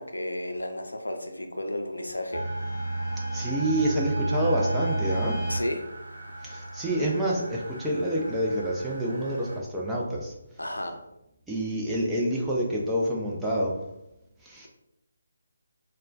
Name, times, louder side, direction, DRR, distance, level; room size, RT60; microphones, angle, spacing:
voice 1, 0.0-2.4 5.5-5.8 10.6-11.0, left 1 dB, 75° left, 4 dB, 0.5 m, -32 dB
sound 1, 2.3-9.6, right 2 dB, 55° right, 0.9 m, -32 dB
voice 2, 3.3-5.4 6.4-10.4 11.5-13.8 14.4-14.7, right 1 dB, 5° right, -5 dB, 0.4 m, -28 dB
4.3 x 2.2 x 2.3 m, 0.87 s
figure-of-eight pair, 150°, 0 cm